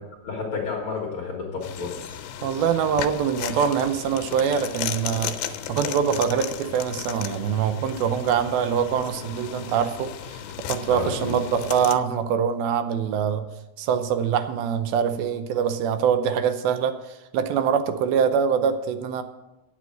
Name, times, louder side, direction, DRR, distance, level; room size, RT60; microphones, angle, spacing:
voice 1, 0.2-1.9 10.9-11.3, left 4 dB, 50° left, -2 dB, 1.7 m, -30 dB
sound 1, 1.6-12.0, left 10 dB, 85° left, 2.5 m, -35 dB
voice 2, 2.4-10.4 10.7-13.5 13.8-19.2, right 7 dB, 80° right, 10 dB, 2.5 m, -24 dB
9.8 x 7.7 x 7.7 m, 1.0 s
omnidirectional pair, 4.4 m